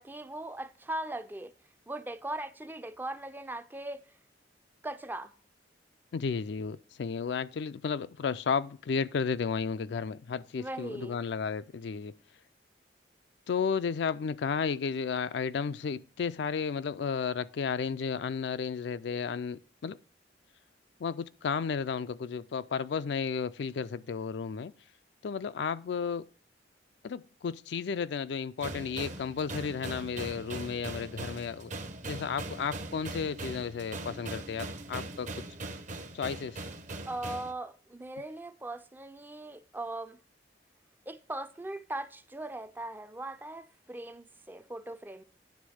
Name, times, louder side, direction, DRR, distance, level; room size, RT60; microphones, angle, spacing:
voice 1, 0.0-1.5 1.9-4.0 4.8-5.3 10.6-11.2 37.0-40.2 41.1-45.2, right 1 dB, 10° right, 0.4 m, -39 dB
voice 2, 6.1-12.2 13.5-20.0 21.0-24.7 25.2-26.3 27.0-31.7 32.0-35.4 36.1-36.7, left 6 dB, 65° left, 0.4 m, -33 dB
sound 1, 28.6-37.5, right 2 dB, 45° right, 0.8 m, -40 dB
9.5 x 3.5 x 6.2 m
head